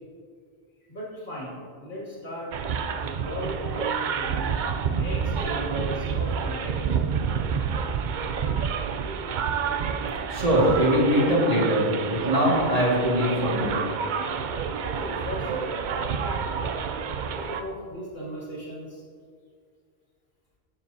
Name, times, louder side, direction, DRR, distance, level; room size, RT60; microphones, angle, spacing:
voice 1, 0.9-2.7 3.0-6.9 7.8-8.3 14.8-15.7 17.3-19.0, equal, 70° left, -6 dB, 2.6 m, -37 dB
sound 1, 2.5-17.6, right 6 dB, 60° right, 0.6 m, -29 dB
voice 2, 10.3-13.8, equal, 35° right, -5 dB, 1.9 m, -22 dB
13.0 x 7.3 x 2.7 m, 2.2 s
omnidirectional pair, 1.1 m